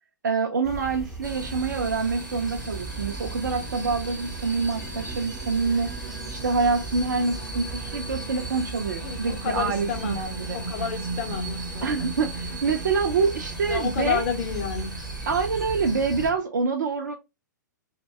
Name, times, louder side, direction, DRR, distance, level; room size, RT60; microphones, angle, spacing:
voice 1, 0.2-10.6 11.8-14.3 15.3-17.2, right 4 dB, 65° right, 0.4 m, -26 dB
sound 1, 0.6-16.3, right 3 dB, ahead, 0.5 m, -38 dB
sound 2, 1.2-16.3, right 2 dB, 80° right, 0.8 m, -37 dB
voice 2, 9.0-10.3 10.5-11.9 13.6-14.9, left 7 dB, 40° left, 0.7 m, -30 dB
2.6 x 2.1 x 3.2 m
figure-of-eight pair, 110°, 10 cm